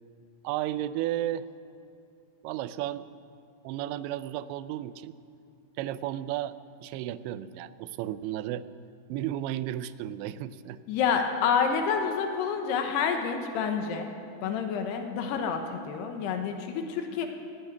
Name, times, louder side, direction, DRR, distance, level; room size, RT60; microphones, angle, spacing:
voice 1, 0.4-1.5 2.4-3.1 3.6-5.2 5.8-6.5 6.8-8.6 9.1-10.8, right 13 dB, 90° right, 15 dB, 2.8 m, -33 dB
voice 2, 10.9-14.1 14.4-17.3, left 6 dB, 75° left, 5 dB, 2.9 m, -28 dB
17.0 x 8.9 x 9.3 m, 2.5 s
omnidirectional pair, 5.0 m